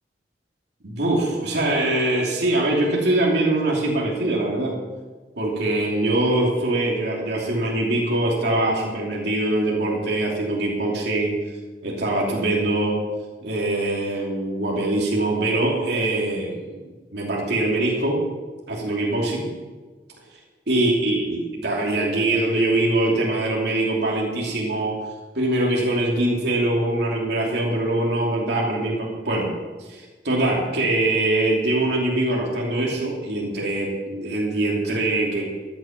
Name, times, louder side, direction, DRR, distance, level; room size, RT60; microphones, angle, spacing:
voice 1, 0.8-4.7 5.4-11.4 11.8-13.0 13.4-16.9 17.1-18.2 18.7-19.5 20.7-25.0 25.3-29.5 29.9-35.5, right 2 dB, 65° right, -3 dB, 3.0 m, -23 dB
14.0 x 11.0 x 6.0 m, 1.3 s
head